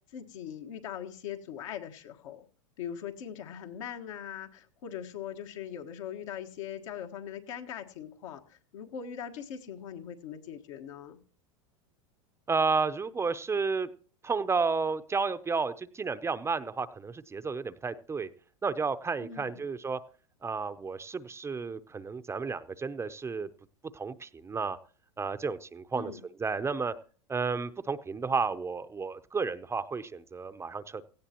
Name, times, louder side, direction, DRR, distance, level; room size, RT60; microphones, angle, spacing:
voice 1, 0.1-2.4 2.8-11.2 19.2-19.6 25.9-26.2, left 9 dB, 75° left, 5 dB, 1.6 m, -41 dB
voice 2, 12.5-13.9 14.2-18.3 18.6-20.0 20.4-23.5 23.9-24.8 25.2-26.1 26.4-26.9 27.3-31.0, right 4 dB, 15° right, 12 dB, 0.6 m, -32 dB
17.0 x 15.0 x 2.9 m, 0.40 s
hypercardioid pair, 110°, 17 cm